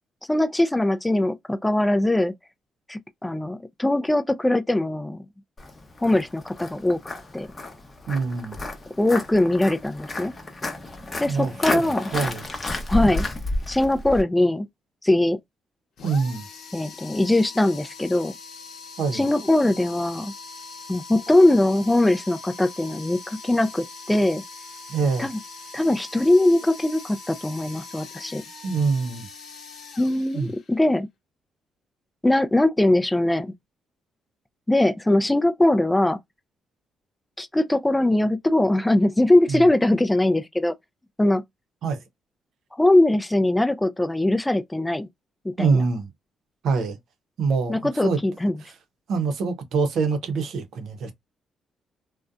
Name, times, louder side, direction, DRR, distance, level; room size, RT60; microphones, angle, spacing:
voice 1, 0.3-2.3 2.9-5.3 6.0-7.0 7.3-7.5 9.0-10.3 11.2-12.1 12.9-13.3 13.7-14.7 15.0-15.4 16.7-18.3 19.1-20.3 20.9-24.4 25.2-25.4 25.7-28.4 30.0-31.1 32.2-33.5 34.7-36.2 37.4-40.7 41.2-41.4 42.7-45.1 45.4-45.8 47.7-48.5, left 1 dB, 10° left, 0.3 m, -21 dB
Walk footsteps, 5.6-14.2, left 2 dB, 25° left, 0.7 m, -31 dB
voice 2, 8.1-8.6 11.3-12.5 16.0-16.5 19.0-19.3 24.9-25.3 28.6-29.3 30.3-30.5 39.5-39.7 41.8-42.0 45.6-46.1 46.6-47.0 47.4-48.2 48.6-48.7 49.1-51.1, right 4 dB, 70° right, 0.7 m, -25 dB
Bowed string instrument, 9.5-12.7, left 1 dB, 10° right, 0.7 m, -48 dB
sound 1, 16.0-30.9, left 4 dB, 65° left, 0.8 m, -42 dB
2.6 x 2.1 x 2.3 m
cardioid pair, 90°, 0 cm